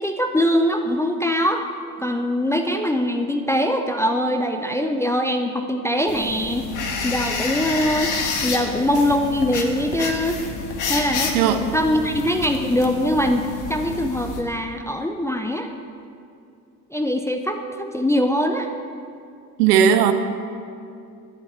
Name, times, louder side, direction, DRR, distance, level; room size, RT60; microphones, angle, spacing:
voice 1, 0.0-1.6 2.0-6.7 7.0-8.1 8.4-10.4 10.9-15.7 16.9-18.7, equal, 5° left, 4 dB, 0.4 m, -22 dB
sound 1, 6.1-14.4, left 4 dB, 40° left, 1.4 m, -29 dB
voice 2, 19.6-20.1, right 8 dB, 70° right, 9 dB, 0.8 m, -16 dB
11.0 x 10.5 x 4.3 m, 2.5 s
hypercardioid pair, 65°, 48 cm